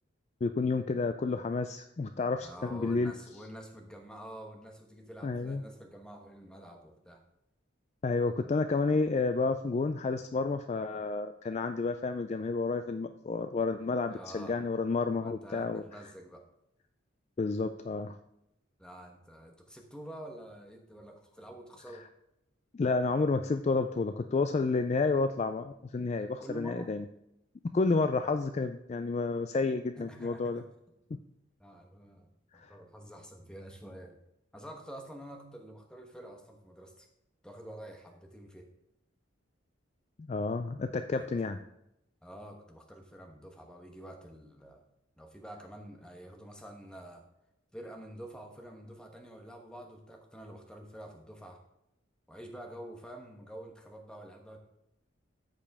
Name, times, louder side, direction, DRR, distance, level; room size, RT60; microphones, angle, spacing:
voice 1, 0.4-3.1 5.2-5.6 8.0-15.8 17.4-18.2 21.9-22.0 22.7-27.0 27.7-30.6 32.5-32.7 40.2-41.6, left 3 dB, 35° left, 8 dB, 0.3 m, -30 dB
voice 2, 2.4-7.2 14.1-14.6 15.2-16.4 18.8-22.1 26.4-26.9 30.0-30.6 31.6-32.3 32.5-34.2 34.5-37.1 37.4-38.7 41.2-41.3 42.2-44.8 45.2-47.3 47.7-51.6 52.3-54.6, right 1 dB, 5° left, 3 dB, 1.1 m, -47 dB
13.5 x 5.3 x 3.5 m, 0.82 s
head